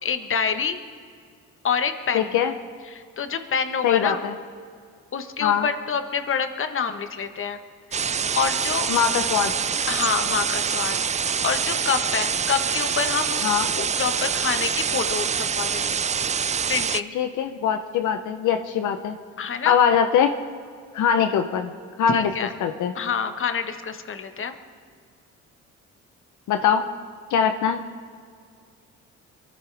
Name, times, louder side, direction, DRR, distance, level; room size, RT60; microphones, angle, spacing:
voice 1, 0.0-0.8 1.6-2.3 2.9-4.2 5.1-7.6 8.3-8.9 9.9-13.5 13.8-16.0 16.7-17.1 19.4-19.8 22.1-22.5 22.9-24.5, left 6 dB, 45° left, 8 dB, 1.3 m, -27 dB
voice 2, 2.1-2.5 3.8-4.3 5.4-5.7 8.9-9.5 13.4-13.7 17.1-19.2 19.6-20.3 20.9-21.7 22.0-22.3 22.6-22.9 26.5-26.9 27.3-27.8, left 8 dB, 75° left, 7 dB, 0.8 m, -22 dB
sound 1, 7.9-17.0, right 6 dB, 25° right, 0.4 m, -25 dB
23.0 x 14.5 x 3.4 m, 2.1 s
cardioid pair, 90°, 30 cm